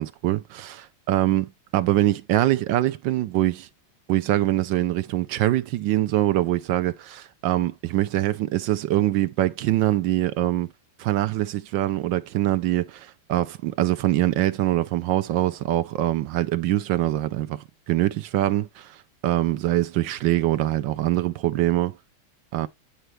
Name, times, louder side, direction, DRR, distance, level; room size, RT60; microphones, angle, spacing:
voice 1, 0.0-3.7 4.1-10.7 11.0-19.0 19.2-21.9 22.5-22.7, right 14 dB, 70° right, 1.2 m, -23 dB
9.9 x 5.3 x 3.2 m
omnidirectional pair, 2.4 m